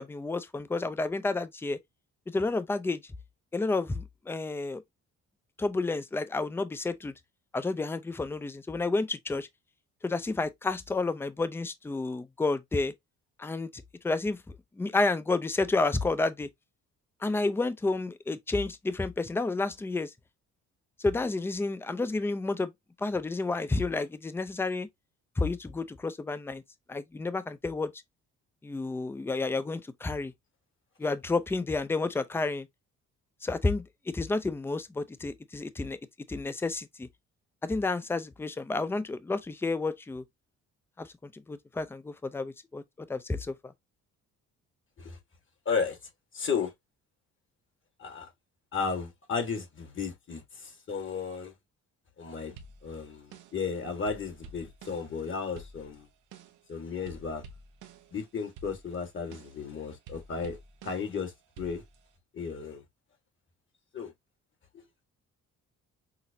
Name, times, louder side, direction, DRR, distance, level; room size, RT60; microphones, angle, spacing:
voice 1, 0.0-1.8 2.3-3.0 3.5-4.8 5.6-7.1 7.5-9.5 10.0-12.9 13.4-13.7 14.0-16.5 17.2-20.1 21.0-22.7 23.0-24.9 25.4-26.6 26.9-27.9 28.6-30.3 31.0-32.7 33.4-36.0 36.3-37.1 37.6-40.2 41.0-43.6, left 3 dB, 10° left, 0.4 m, -30 dB
voice 2, 45.6-46.0 46.3-46.7 48.0-48.3 48.7-51.5 52.2-52.5 52.8-56.1 56.7-57.4 58.1-60.6 60.8-61.8 62.3-62.8 63.9-64.1 64.7-64.8, left 5 dB, 40° left, 1.5 m, -34 dB
sound 1, 52.6-53.7 54.1-56.7 57.1-58.2 58.5-61.2 61.6-62.2, right 3 dB, 85° right, 0.7 m, -50 dB
5.8 x 2.0 x 2.6 m
cardioid pair, 90°, 30 cm